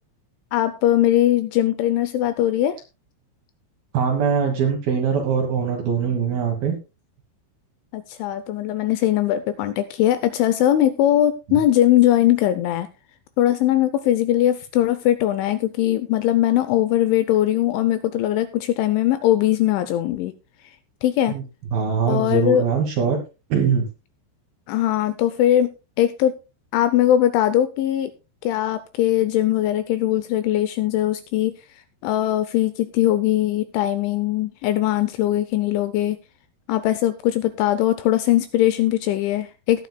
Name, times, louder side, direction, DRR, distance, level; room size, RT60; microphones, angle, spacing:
voice 1, 0.5-2.8 7.9-12.9 13.4-20.3 21.0-21.4 22.1-22.6 24.7-25.7 26.0-26.3 26.7-28.1 28.4-31.5 32.0-36.2 36.7-39.9, left 12 dB, 80° left, 11 dB, 2.8 m, -20 dB
voice 2, 3.9-6.7 11.5-11.6 21.3-21.4 21.7-23.2 23.5-23.9, right 6 dB, 65° right, 2 dB, 2.5 m, -22 dB
19.0 x 9.2 x 2.2 m, 0.28 s
omnidirectional pair, 5.9 m